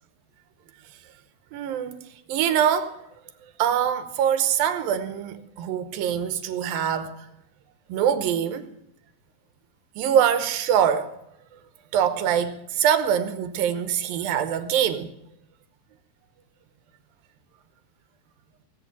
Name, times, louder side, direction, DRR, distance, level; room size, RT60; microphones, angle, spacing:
voice 1, 1.5-2.0 2.3-3.0 3.6-7.1 7.9-8.7 10.0-11.1 11.9-15.1, right 9 dB, 85° right, 2.8 m, -24 dB
18.5 x 8.7 x 7.3 m
omnidirectional pair, 4.0 m